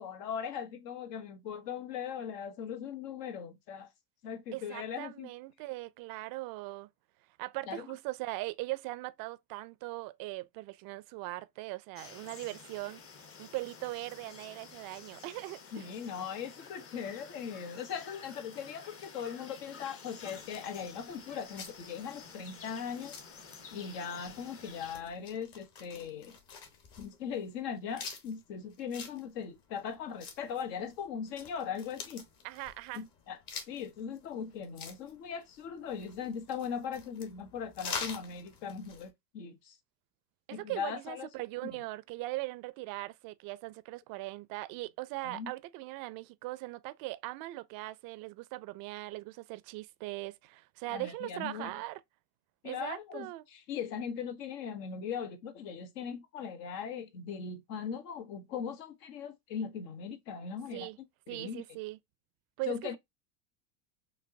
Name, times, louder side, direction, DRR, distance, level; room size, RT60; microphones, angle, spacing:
voice 1, 0.0-3.9 4.2-5.3 7.7-7.9 15.7-23.2 23.7-26.4 27.0-32.2 32.9-33.4 33.7-39.8 40.5-41.3 45.2-45.5 50.9-51.7 52.6-60.9 61.3-61.6 62.7-63.0, left 7 dB, 70° left, 1.0 m, -39 dB
voice 2, 4.5-6.9 7.4-13.0 13.4-15.9 32.4-33.0 40.5-52.0 52.6-53.4 60.7-61.0 61.3-62.0 62.6-63.0, right 20 dB, 45° right, 0.4 m, -40 dB
sound 1, 12.0-25.0, left 5 dB, 30° left, 0.7 m, -51 dB
sound 2, 20.4-39.1, left 5 dB, 45° left, 1.3 m, -47 dB
5.1 x 2.1 x 2.6 m
hypercardioid pair, 85°, 49 cm